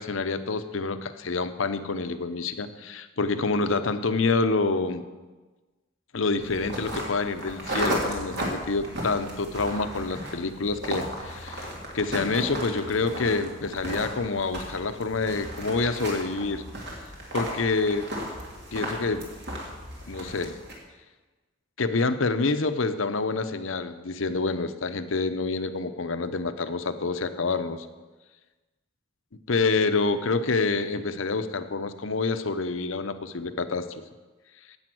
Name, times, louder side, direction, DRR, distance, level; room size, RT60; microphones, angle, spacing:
voice 1, 0.0-5.0 6.1-16.6 17.3-18.1 18.7-19.3 20.1-20.6 21.8-27.9 29.5-34.0, left 3 dB, 85° left, 10 dB, 0.8 m, -27 dB
sound 1, 6.4-20.7, equal, 55° right, 2.9 m, -35 dB
10.5 x 8.8 x 7.7 m, 1.3 s
head